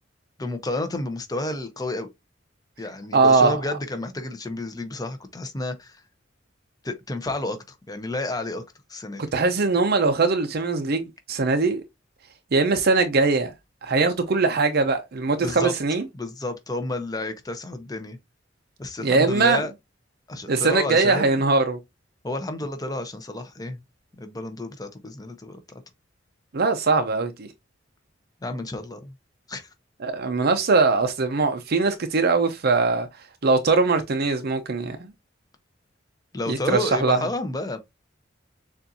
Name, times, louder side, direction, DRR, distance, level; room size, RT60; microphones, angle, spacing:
voice 1, 0.4-2.1 2.8-6.0 6.8-8.6 8.9-9.2 15.4-15.7 16.1-18.2 18.8-19.7 20.3-21.4 22.2-23.8 24.1-25.6 28.4-29.1 29.5-29.7 36.3-37.8, left 2 dB, 20° left, 0.8 m, -31 dB
voice 2, 3.1-3.6 9.2-11.8 12.5-13.5 13.8-16.0 19.0-19.6 20.5-21.8 26.5-27.5 30.0-33.1 33.4-35.1 36.5-37.2, right 4 dB, 55° right, 0.6 m, -21 dB
6.8 x 2.5 x 2.7 m
head